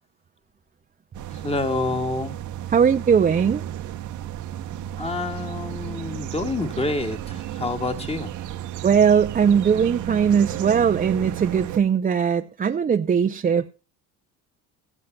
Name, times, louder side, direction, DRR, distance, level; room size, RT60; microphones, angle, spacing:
sound 1, 1.1-11.8, right 12 dB, 55° right, 0.9 m, -33 dB
voice 1, 1.3-2.4 5.0-8.3, left 3 dB, 15° left, 1.7 m, -28 dB
voice 2, 2.7-3.6 8.8-13.7, right 7 dB, 25° right, 0.5 m, -20 dB
15.5 x 15.0 x 2.3 m
cardioid pair, 95°, 35 cm